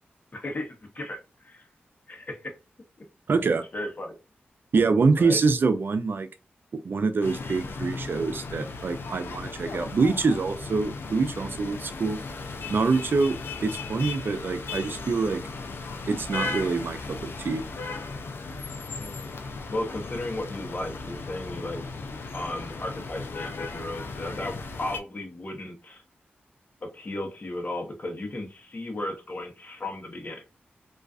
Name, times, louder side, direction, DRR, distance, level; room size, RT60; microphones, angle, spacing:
voice 1, 0.3-1.6 2.1-2.5 3.7-4.2 5.1-5.4 18.9-19.3 19.7-21.8 22.3-26.0 26.8-30.4, left 1 dB, 45° left, 3 dB, 0.8 m, -35 dB
voice 2, 3.3-3.6 4.7-6.3 6.7-12.2 12.7-15.4 16.1-17.6, right 4 dB, 60° right, 10 dB, 0.4 m, -25 dB
sound 1, 7.2-25.0, left 3 dB, 70° left, 0.4 m, -36 dB
2.4 x 2.3 x 2.3 m, 0.29 s
cardioid pair, 65°, 4 cm